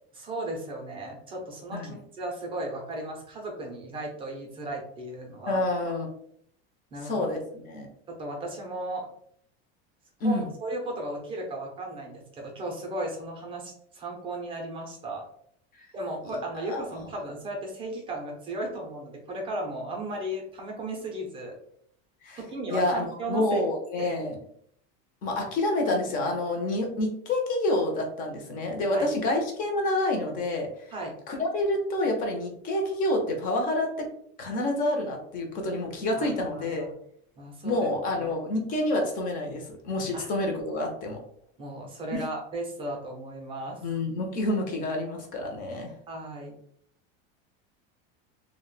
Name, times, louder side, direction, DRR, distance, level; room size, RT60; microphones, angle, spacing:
voice 1, 0.1-5.6 6.9-7.3 8.1-9.1 10.2-15.2 15.9-21.6 22.4-23.6 24.0-24.2 28.9-29.1 30.9-31.1 36.1-36.9 37.4-37.9 38.2-38.3 40.1-40.3 41.6-43.8 46.1-46.6, right 1 dB, 15° right, 1 dB, 0.5 m, -35 dB
voice 2, 5.5-6.1 7.0-7.9 10.2-10.4 16.3-16.4 16.7-16.9 22.2-22.4 22.7-24.3 25.2-30.7 31.3-33.9 34.4-36.9 37.6-41.2 42.1-42.2 43.8-45.9, left 1 dB, 30° left, 2 dB, 0.6 m, -28 dB
2.4 x 2.2 x 3.8 m, 0.65 s
cardioid pair, 175°, 30 cm